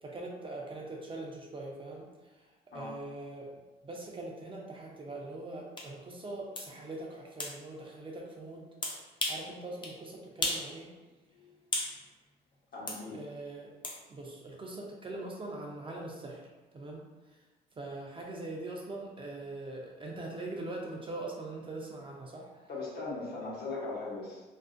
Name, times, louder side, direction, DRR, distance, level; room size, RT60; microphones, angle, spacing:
voice 1, 0.0-2.0 2.4-2.5 2.7-3.5 3.8-8.7 9.3-10.9 13.1-13.7 14.1-16.5 16.7-17.1 17.8-22.7, right 2 dB, 30° right, -1 dB, 0.5 m, -42 dB
sound 1, 5.8-5.9 6.6-6.7 7.4-7.6 8.8-9.5 9.8-10.0 10.4-10.7 11.0-12.0 12.9-13.0 13.8-14.0, left 2 dB, 25° left, 0.5 m, -34 dB
voice 2, 12.7-13.2 22.7-24.4, left 3 dB, 60° left, -5 dB, 0.9 m, -38 dB
2.5 x 2.0 x 2.4 m, 1.2 s
supercardioid pair, 75°, 19 cm